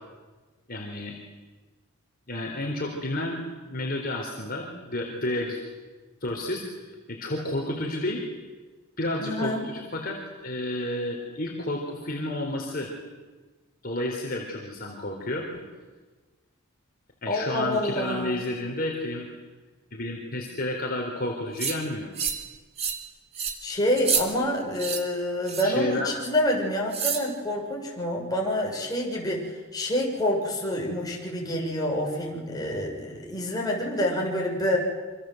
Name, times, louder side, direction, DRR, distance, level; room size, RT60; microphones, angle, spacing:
voice 1, 0.7-1.2 2.3-5.6 6.2-6.6 7.1-8.2 9.0-12.9 13.8-15.6 17.2-19.3 19.9-22.1 25.6-26.1, left 1 dB, 40° left, 0 dB, 3.9 m, -31 dB
voice 2, 9.2-9.7 17.2-18.5 23.6-34.8, left 1 dB, 15° left, -1 dB, 6.7 m, -27 dB
sound 1, 21.6-21.8 22.2-22.5 22.8-23.0 23.3-23.6 24.0-24.2 24.8-25.0 25.5-25.8 26.9-27.3, right 6 dB, 30° right, 2.9 m, -28 dB
27.5 x 26.0 x 8.0 m, 1.3 s
head